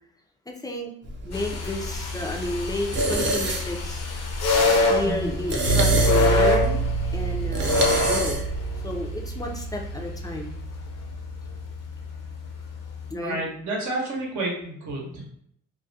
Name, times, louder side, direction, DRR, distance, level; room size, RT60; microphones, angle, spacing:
voice 1, 0.5-0.9 1.2-4.1 4.9-6.8 7.1-10.6 13.1-13.4, left 1 dB, 15° left, 1 dB, 0.4 m, -32 dB
sound 1, 1.0-8.7, right 2 dB, 40° right, 0.6 m, -29 dB
sound 2, 1.3-13.1, left 3 dB, 55° left, 0.6 m, -27 dB
sound 3, 5.7-11.4, right 4 dB, 85° left, 0.9 m, -28 dB
voice 2, 13.1-15.4, right 2 dB, 75° right, -2 dB, 0.8 m, -30 dB
2.3 x 2.1 x 2.6 m, 0.69 s
cardioid pair, 90°, 30 cm